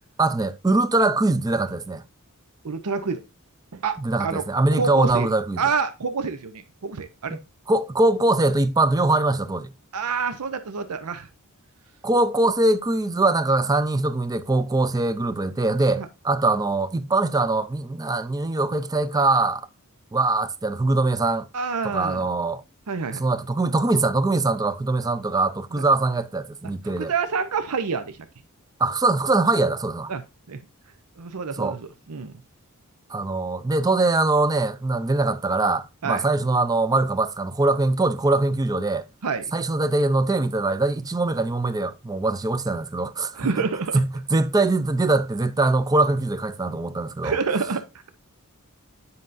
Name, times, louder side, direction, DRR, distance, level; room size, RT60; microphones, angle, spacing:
voice 1, 0.2-2.0 4.0-5.6 7.3-7.4 7.7-9.7 12.0-19.7 20.1-21.5 21.8-22.6 23.1-27.1 28.8-30.1 31.6-31.8 33.1-39.1 39.5-43.6 43.9-47.4, right 2 dB, 15° right, 0.4 m, -22 dB
voice 2, 2.6-3.2 3.7-4.4 4.7-5.3 5.6-7.4 9.9-11.3 16.0-16.1 21.5-22.2 22.9-23.2 25.7-25.8 27.0-28.2 30.1-30.2 30.5-30.6 31.2-32.3 36.0-36.2 39.2-39.4 43.4-44.0 47.2-47.8, right 5 dB, 90° right, 0.7 m, -27 dB
9.7 x 5.4 x 2.6 m
head